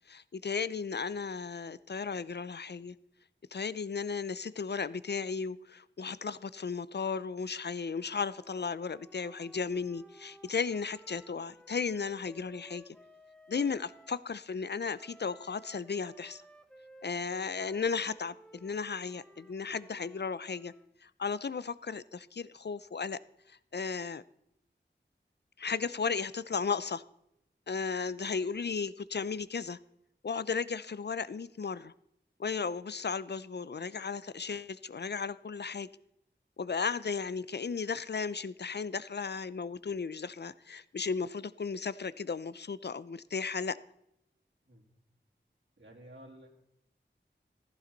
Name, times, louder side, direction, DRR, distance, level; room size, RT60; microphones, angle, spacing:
voice 1, 0.1-2.9 3.5-13.0 13.5-16.4 17.0-20.7 21.0-23.2 23.5-24.2 25.6-27.0 27.7-29.8 30.2-31.9 32.4-35.9 36.6-43.8, left 5 dB, 60° left, 0.5 m, -35 dB
Wind instrument woodwind instrument, 7.8-14.2 14.9-21.0, equal, 5° left, 1.0 m, -57 dB
voice 2, 45.8-46.5, right 1 dB, 85° right, 3.2 m, -52 dB
15.5 x 14.5 x 4.0 m
wide cardioid pair, 50°, 19 cm